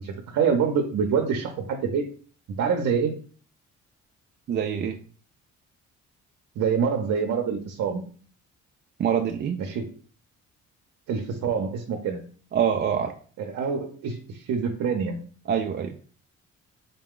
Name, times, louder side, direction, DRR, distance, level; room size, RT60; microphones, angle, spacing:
voice 1, 0.0-2.0 2.6-3.1 6.6-8.0 9.6-9.9 11.1-12.2 13.4-15.2, right 6 dB, 70° right, 3 dB, 0.7 m, -26 dB
voice 2, 4.5-5.0 9.0-9.6 12.5-13.1 15.5-16.0, right 8 dB, 40° right, 4 dB, 0.4 m, -25 dB
4.0 x 2.2 x 3.7 m, 0.42 s
cardioid pair, 90°, 30 cm